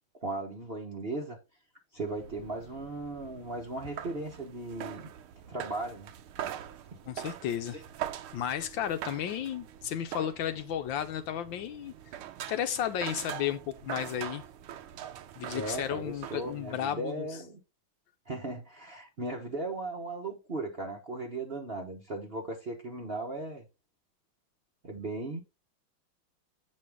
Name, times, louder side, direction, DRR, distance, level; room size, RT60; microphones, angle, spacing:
voice 1, 0.2-1.4 1.9-5.1 5.5-6.1 7.7-7.8 15.5-17.6 18.3-23.6 24.8-25.4, right 2 dB, 40° right, 0.9 m, -37 dB
sound 1, 2.0-16.9, right 11 dB, 85° right, 1.7 m, -43 dB
voice 2, 7.1-7.8 8.3-11.9 12.5-14.4 15.4-17.3, left 10 dB, 70° left, 1.3 m, -33 dB
8.4 x 5.4 x 3.4 m
omnidirectional pair, 2.3 m